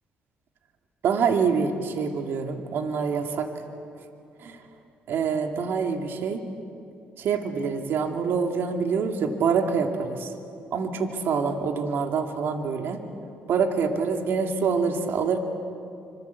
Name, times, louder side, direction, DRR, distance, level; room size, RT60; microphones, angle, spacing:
voice 1, 1.0-3.5 4.4-4.6 5.1-6.4 7.2-10.3 10.7-13.0 13.5-15.4, right 5 dB, 70° right, 4 dB, 2.5 m, -26 dB
26.5 x 26.0 x 8.3 m, 2.5 s
cardioid pair, 90°, 4 cm